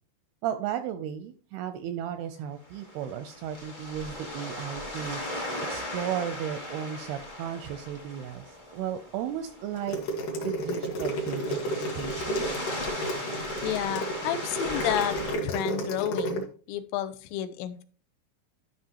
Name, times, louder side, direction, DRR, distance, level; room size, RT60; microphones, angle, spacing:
voice 1, 0.4-5.2 5.7-10.0 10.4-11.6 11.9-12.5, right 9 dB, 85° right, 9 dB, 2.3 m, -34 dB
sound 1, 2.6-15.3, left 1 dB, 25° left, 0.6 m, -38 dB
sound 2, 9.8-16.4, equal, 60° left, 2.6 m, -31 dB
voice 2, 13.6-15.2 15.4-17.8, left 11 dB, 90° left, 10 dB, 2.9 m, -31 dB
13.0 x 5.8 x 2.9 m, 0.42 s
omnidirectional pair, 5.0 m